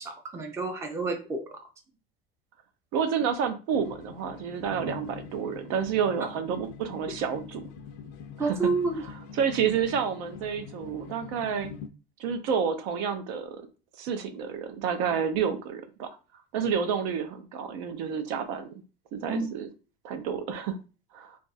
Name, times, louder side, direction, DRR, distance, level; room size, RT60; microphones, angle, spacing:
voice 1, 0.0-1.6 8.4-9.0 19.3-19.5, right 3 dB, 15° right, 4 dB, 0.4 m, -29 dB
voice 2, 2.9-7.7 8.4-8.6 9.4-11.7 12.2-13.6 14.0-16.1 16.5-18.7 19.1-19.7 20.0-20.8 21.1-21.4, right 7 dB, 75° right, 8 dB, 0.6 m, -29 dB
sound 1, 3.7-11.9, left 7 dB, 60° left, 0.4 m, -44 dB
2.5 x 2.3 x 4.0 m, 0.33 s
cardioid pair, 160°, 20 cm